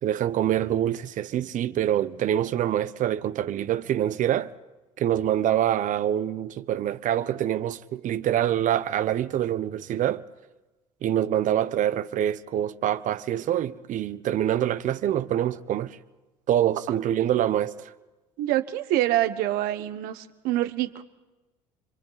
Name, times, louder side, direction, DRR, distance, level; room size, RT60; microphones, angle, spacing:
voice 1, 0.0-4.5 5.0-10.2 11.0-16.0 16.5-17.9, right 11 dB, 55° right, 0.9 m, -25 dB
voice 2, 18.4-21.0, right 14 dB, 70° right, 1.3 m, -26 dB
30.0 x 23.5 x 4.1 m
hypercardioid pair, 75°, 16 cm